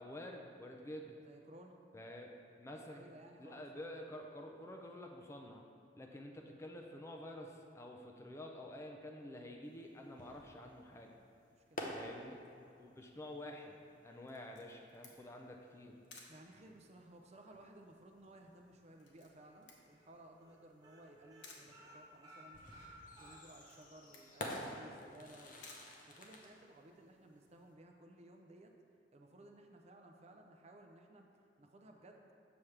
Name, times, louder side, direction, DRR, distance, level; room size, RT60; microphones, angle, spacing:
voice 1, 0.0-1.2 1.9-2.3 2.6-3.0 3.4-5.6 5.9-11.1 11.9-12.4 12.8-13.7 14.0-15.9, left 1 dB, 15° left, 1 dB, 0.4 m, -49 dB
voice 2, 1.2-1.8 2.7-3.9 11.5-12.5 16.3-22.6 23.2-25.6 26.1-28.7 29.1-31.3 31.6-32.2, right 1 dB, 35° right, 3 dB, 0.5 m, -58 dB
sound 1, 9.7-27.7, left 1 dB, 45° left, 0.8 m, -51 dB
Camera, 14.3-26.8, left 3 dB, 85° left, 0.9 m, -62 dB
sound 2, 19.0-19.6 19.9-20.1 20.3-20.5 20.8-23.8 24.2-24.3 24.6-24.7, right 1 dB, 20° right, 1.0 m, -59 dB
7.0 x 6.1 x 3.3 m, 2.5 s
head